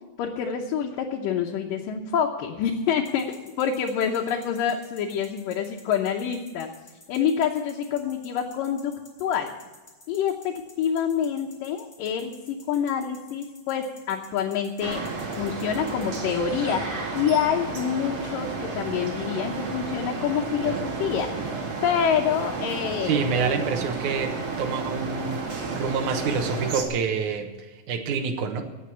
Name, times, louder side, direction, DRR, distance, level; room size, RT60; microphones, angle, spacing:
voice 1, 0.2-6.7 7.1-8.9 9.2-9.5 10.1-15.0 15.4-21.5 21.8-23.6, left 8 dB, 90° left, 0 dB, 2.6 m, -27 dB
sound 1, 3.0-16.2, left 2 dB, 20° left, 3.3 m, -51 dB
sound 2, 14.8-26.8, right 4 dB, 50° right, 2.9 m, -32 dB
voice 2, 23.0-25.5 25.7-27.5 27.9-28.6, right 5 dB, 70° right, 4 dB, 2.5 m, -27 dB
17.0 x 6.5 x 8.5 m, 1.2 s
omnidirectional pair, 3.8 m